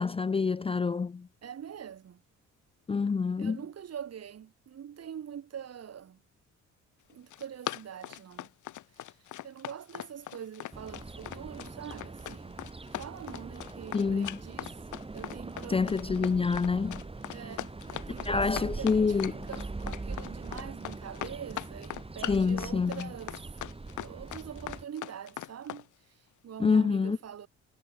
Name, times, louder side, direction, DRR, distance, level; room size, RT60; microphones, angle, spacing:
voice 1, 0.0-1.3 2.9-3.6 13.9-14.4 15.7-17.0 18.3-19.5 22.3-23.1 26.6-27.2, left 5 dB, 20° left, 0.5 m, -27 dB
voice 2, 1.4-2.2 3.4-6.2 7.1-8.5 9.0-9.1 9.4-14.8 15.1-16.0 17.3-19.2 19.5-23.5 24.0-27.5, right 8 dB, 55° right, 3.4 m, -44 dB
Run, 7.1-25.8, left 13 dB, 80° left, 3.1 m, -40 dB
sound 1, 10.7-24.9, right 3 dB, 20° right, 3.0 m, -42 dB
cardioid pair, 90°, 30 cm